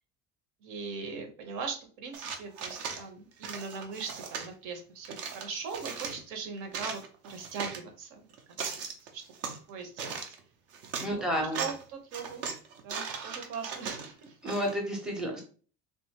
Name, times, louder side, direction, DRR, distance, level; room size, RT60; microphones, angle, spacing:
voice 1, 0.6-8.2 8.7-8.8 9.1-9.2 9.7-10.2 11.1-12.5 12.8-14.3, right 5 dB, 60° right, 4 dB, 1.0 m, -40 dB
sound 1, 2.1-3.0 3.4-4.5 5.0-6.2 6.6-7.8 8.3-9.6 10.0-10.4 10.7-11.1 11.5-11.8 12.1-14.8, right 6 dB, 45° right, 0.6 m, -38 dB
voice 2, 11.0-11.6 14.4-15.4, equal, ahead, 0 dB, 0.7 m, -31 dB
3.4 x 2.5 x 2.9 m, 0.39 s
cardioid pair, 175°, 35 cm